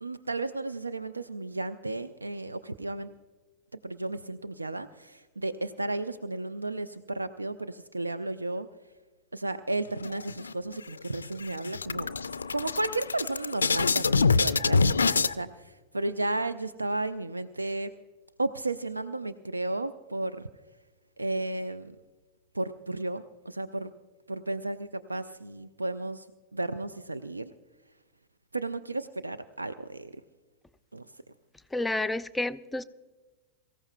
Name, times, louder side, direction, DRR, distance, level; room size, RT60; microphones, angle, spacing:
voice 1, 0.0-3.1 3.8-8.7 9.3-12.1 12.5-17.9 18.4-20.4 21.2-22.0 22.5-23.9 24.3-26.3 26.5-27.5 28.5-30.1 30.9-31.0, right 2 dB, 80° right, 13 dB, 0.4 m, -33 dB
sound 1, 10.0-10.8 11.1-11.3 11.6-15.3, left 4 dB, 75° left, 0.3 m, -25 dB
voice 2, 31.7-32.8, left 2 dB, 5° left, 11 dB, 0.5 m, -30 dB
23.5 x 15.0 x 2.2 m, 1.3 s
figure-of-eight pair, 90°, 0 cm